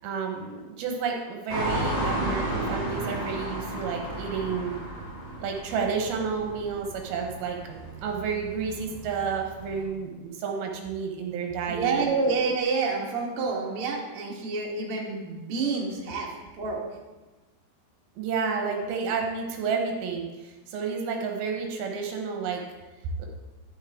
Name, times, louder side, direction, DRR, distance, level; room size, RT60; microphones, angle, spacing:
voice 1, 0.0-4.7 5.4-12.1 18.2-22.6 23.2-23.3, right 5 dB, 70° right, 2 dB, 2.7 m, -31 dB
sound 1, 1.5-9.8, right 1 dB, 25° left, 0.9 m, -33 dB
voice 2, 11.7-16.8, right 4 dB, 55° right, -2 dB, 1.6 m, -28 dB
11.0 x 7.3 x 3.6 m, 1.2 s
omnidirectional pair, 4.9 m